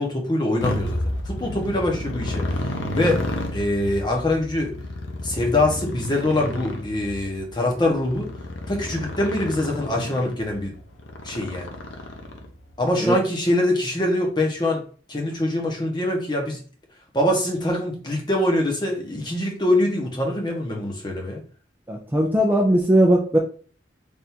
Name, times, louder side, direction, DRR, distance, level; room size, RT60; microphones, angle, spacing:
voice 1, 0.0-2.5 2.9-3.2 3.5-4.7 5.2-8.3 8.7-10.7 11.2-11.8 12.8-14.8 15.1-16.6 17.1-21.4, left 1 dB, 25° left, 0 dB, 0.9 m, -24 dB
Motorcycle, 0.6-12.7, left 1 dB, 90° left, 0.7 m, -31 dB
voice 2, 21.9-23.4, right 1 dB, 10° right, 1 dB, 0.4 m, -18 dB
3.5 x 2.6 x 4.3 m, 0.41 s
head